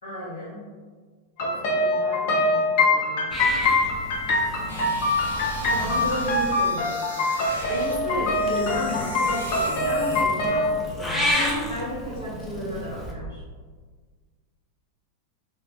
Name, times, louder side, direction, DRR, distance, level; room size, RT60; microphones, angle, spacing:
voice 1, 0.0-0.7 1.4-3.3 5.6-6.9 7.7-13.4, equal, 65° left, -10 dB, 0.9 m, -33 dB
sound 1, 1.4-10.7, left 2 dB, 50° left, 0.6 m, -24 dB
Purr / Meow, 3.3-6.5 7.5-13.1, equal, 5° left, 0.6 m, -32 dB
sound 2, 4.7-7.9 8.3-10.2, equal, 85° right, 0.6 m, -39 dB
2.6 x 2.2 x 3.6 m, 1.5 s
figure-of-eight pair, 90°, 0 cm